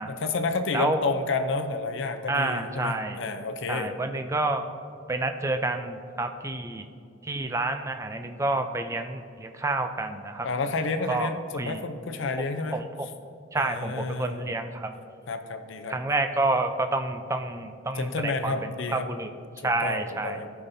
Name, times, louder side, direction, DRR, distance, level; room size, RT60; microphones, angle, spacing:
voice 1, 0.1-3.9 10.4-13.1 13.5-14.6 15.3-16.0 17.9-19.1 19.6-20.5, left 3 dB, 60° left, 8 dB, 0.5 m, -30 dB
voice 2, 2.3-3.2 3.7-4.6 5.1-6.8 7.3-10.5 11.1-11.3 11.6-11.8 12.7-12.8 13.5-14.9 15.9-18.5 18.9-19.3 19.6-20.4, right 2 dB, 15° right, 7 dB, 0.3 m, -28 dB
14.5 x 5.7 x 2.7 m, 2.5 s
head